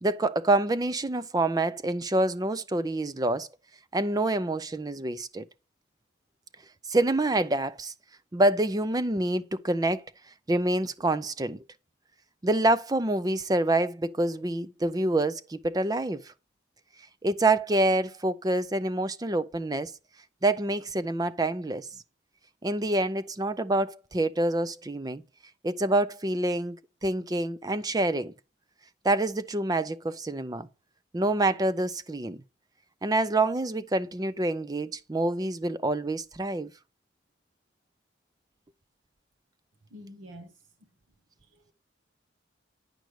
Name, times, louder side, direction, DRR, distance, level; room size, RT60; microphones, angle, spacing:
voice 1, 0.0-3.5 3.9-5.4 6.8-7.9 8.3-10.0 10.5-11.6 12.4-16.3 17.2-19.9 20.4-21.9 22.6-25.2 25.6-28.3 29.0-30.7 31.1-32.4 33.0-36.7, right 2 dB, 20° right, 0.4 m, -27 dB
voice 2, 39.9-40.6 41.4-41.7, equal, 80° right, 1.2 m, -47 dB
10.5 x 5.2 x 4.7 m
head